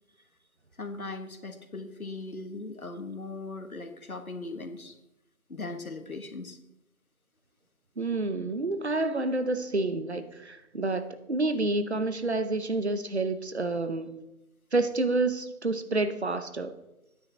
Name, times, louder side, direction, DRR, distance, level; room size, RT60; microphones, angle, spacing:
voice 1, 0.8-5.0 5.5-6.6, left 3 dB, 70° left, 7 dB, 1.6 m, -39 dB
voice 2, 8.0-14.1 14.7-16.7, right 2 dB, 50° right, 10 dB, 0.9 m, -29 dB
11.0 x 9.6 x 4.4 m, 0.92 s
figure-of-eight pair, 165°, 43 cm